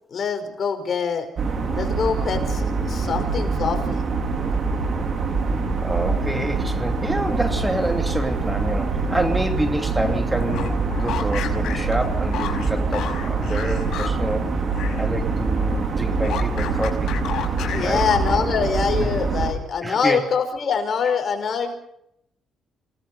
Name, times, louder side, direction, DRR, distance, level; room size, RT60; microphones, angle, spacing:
voice 1, 0.1-1.3 1.7-4.0 17.7-21.7, left 6 dB, 50° left, 6 dB, 5.0 m, -24 dB
sound 1, 1.4-19.5, right 4 dB, 50° right, 4.8 m, -24 dB
voice 2, 5.8-14.5 15.0-17.1 17.8-18.1 19.0-19.1 19.8-20.2, right 1 dB, 10° right, 5 dB, 2.8 m, -27 dB
sound 2, 10.4-15.1 15.4-18.6, left 8 dB, 75° left, 5.6 m, -33 dB
28.0 x 18.5 x 5.6 m, 0.75 s
cardioid pair, 90°, 0 cm